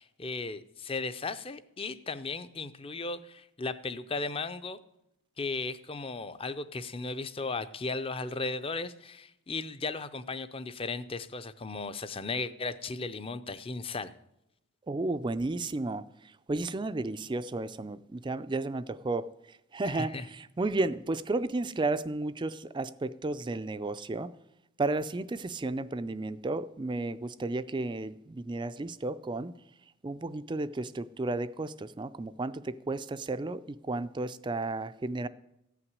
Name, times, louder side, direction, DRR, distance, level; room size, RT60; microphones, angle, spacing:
voice 1, 0.0-4.8 5.4-14.1 19.8-20.3, left 3 dB, 25° left, 0.5 m, -36 dB
voice 2, 14.9-16.0 16.5-19.3 19.7-24.3 24.8-29.5 30.0-35.3, right 2 dB, 20° right, 0.4 m, -33 dB
14.5 x 5.9 x 9.5 m
head